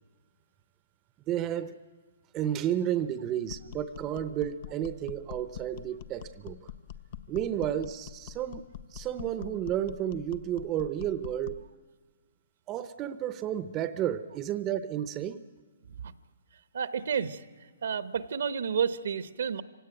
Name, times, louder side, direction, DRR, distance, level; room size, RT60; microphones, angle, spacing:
voice 1, 1.3-1.8 2.3-6.7 7.3-11.6 12.7-15.4, right 10 dB, 25° right, 12 dB, 0.7 m, -32 dB
sound 1, 3.5-11.7, left 10 dB, 50° left, 0.8 m, -44 dB
voice 2, 16.7-17.4 17.8-19.6, right 7 dB, 70° right, 13 dB, 1.0 m, -30 dB
25.5 x 17.0 x 9.2 m, 1.4 s
hypercardioid pair, 145°, 0 cm